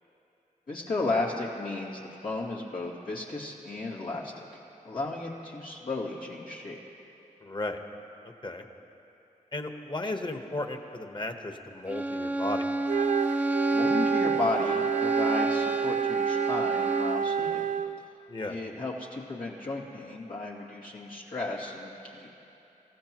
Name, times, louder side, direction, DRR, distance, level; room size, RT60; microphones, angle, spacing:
voice 1, 0.7-4.5 4.8-6.8 13.7-17.5 18.5-22.3, left 2 dB, 90° left, -4 dB, 2.5 m, -34 dB
voice 2, 7.4-7.8 8.4-8.6 9.5-12.7 18.3-18.6, left 2 dB, 35° left, 5 dB, 1.2 m, -34 dB
Bowed string instrument, 11.9-17.3, right 2 dB, 10° right, 0.6 m, -30 dB
Wind instrument woodwind instrument, 12.8-18.0, right 8 dB, 65° right, 0.4 m, -28 dB
27.0 x 15.5 x 3.1 m, 3.0 s
cardioid pair, 65°, 14 cm